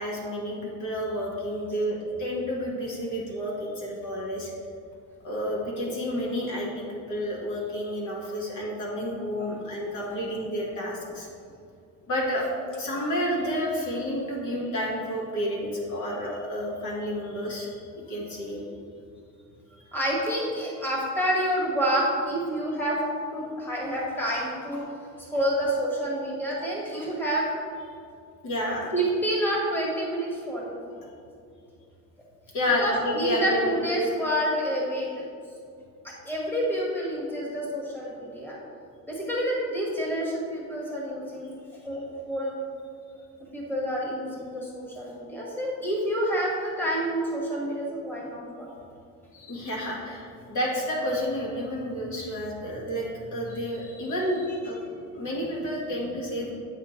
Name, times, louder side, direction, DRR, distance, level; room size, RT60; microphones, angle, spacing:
voice 1, 0.0-4.5 5.2-11.3 12.1-17.7 18.1-18.6 28.4-28.9 32.5-34.1 49.3-54.8 55.1-56.5, equal, 55° left, -3 dB, 1.6 m, -30 dB
voice 2, 19.9-23.0 23.3-24.8 25.3-27.5 28.9-31.0 32.8-35.2 36.0-38.6 39.1-41.5 41.8-42.5 43.5-48.7, equal, 5° left, -4 dB, 1.4 m, -28 dB
7.8 x 5.7 x 3.1 m, 2.4 s
cardioid pair, 115°, 36 cm